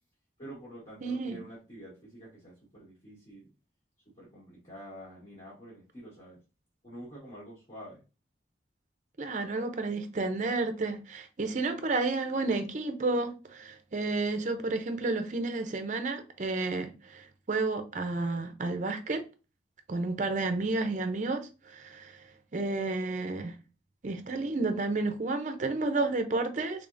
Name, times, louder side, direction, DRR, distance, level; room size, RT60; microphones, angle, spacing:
voice 1, 0.4-3.5 4.0-6.4 6.8-8.0, equal, 30° left, 1.3 m, -47 dB
voice 2, 1.0-1.4 9.2-19.2 19.9-23.6 24.0-26.9, right 3 dB, 40° right, 0.5 m, -31 dB
3.5 x 3.4 x 2.5 m
head